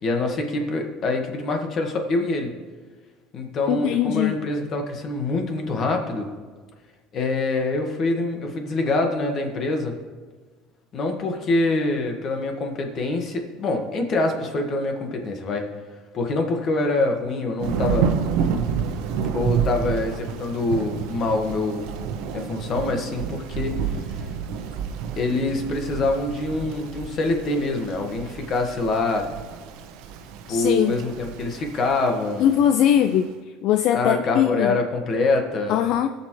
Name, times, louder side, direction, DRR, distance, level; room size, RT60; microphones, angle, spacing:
voice 1, 0.0-2.5 3.3-6.3 7.1-9.9 10.9-15.6 16.1-18.1 19.3-21.9 22.3-23.8 25.2-29.3 30.5-32.5 33.9-35.8, left 2 dB, 40° left, 3 dB, 1.6 m, -25 dB
voice 2, 3.7-4.4 30.5-30.9 32.4-33.3 33.6-34.8 35.7-36.1, left 10 dB, 60° left, 9 dB, 0.4 m, -20 dB
Thunder / Rain, 17.6-33.2, right 7 dB, 75° right, 1.0 m, -30 dB
21.0 x 7.1 x 3.2 m, 1.4 s
cardioid pair, 135°, 0 cm